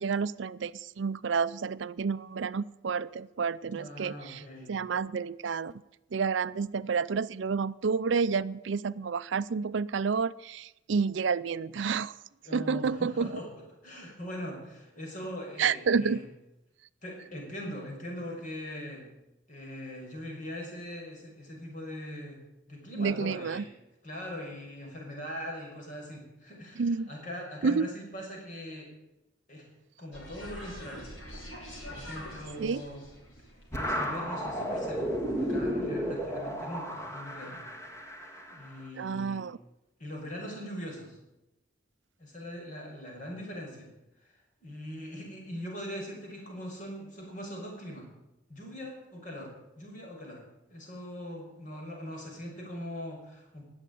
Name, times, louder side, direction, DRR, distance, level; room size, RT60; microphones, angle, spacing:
voice 1, 0.0-4.4 4.7-5.7 6.1-12.1 12.5-13.4 15.6-16.2 23.0-23.6 26.8-27.1 27.6-27.9 32.6-32.8 39.0-39.6, right 5 dB, 70° right, 17 dB, 0.5 m, -29 dB
voice 2, 3.7-4.7 12.4-13.5 13.8-16.3 17.0-19.1 19.5-22.4 22.7-23.7 24.0-28.9 29.5-29.7 30.0-31.1 31.9-33.0 33.7-37.7 38.5-39.5 40.0-41.2 42.2-43.9 44.2-44.3 44.6-48.1 48.5-50.4 50.7-53.6, equal, 40° left, 0 dB, 6.1 m, -41 dB
sound 1, 30.1-35.6, equal, 85° left, 5.9 m, -46 dB
sound 2, 33.7-38.8, equal, 15° left, 1.8 m, -33 dB
19.5 x 7.9 x 9.2 m, 0.93 s
head